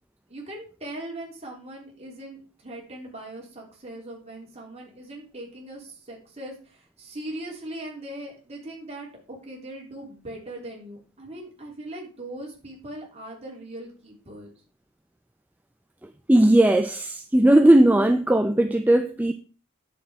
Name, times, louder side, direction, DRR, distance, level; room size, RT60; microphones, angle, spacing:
voice 1, 0.3-14.5, right 1 dB, 30° right, 3.5 m, -40 dB
voice 2, 16.3-19.3, right 1 dB, 10° right, 0.5 m, -18 dB
10.0 x 6.8 x 5.0 m
head